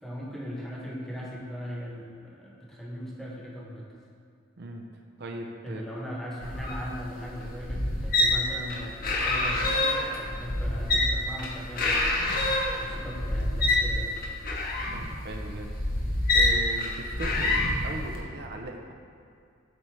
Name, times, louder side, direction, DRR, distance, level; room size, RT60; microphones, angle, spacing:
voice 1, 0.0-3.9 5.6-12.2 12.8-14.2, equal, ahead, -4 dB, 1.1 m, -39 dB
voice 2, 4.6-4.9 5.2-5.8 14.9-15.7 16.3-18.9, right 1 dB, 55° right, 3 dB, 0.6 m, -39 dB
sound 1, 6.4-18.2, left 2 dB, 45° left, 0.9 m, -27 dB
8.2 x 4.3 x 4.6 m, 2.3 s
head